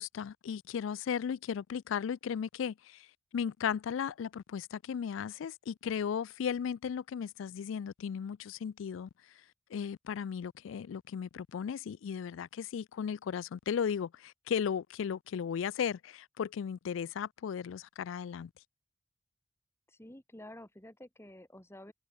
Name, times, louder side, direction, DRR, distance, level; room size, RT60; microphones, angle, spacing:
voice 1, 0.0-3.1 3.3-9.1 9.7-18.5, left 7 dB, 70° left, 0.3 m, -36 dB
voice 2, 19.9-21.9, left 1 dB, 10° left, 2.2 m, -50 dB
head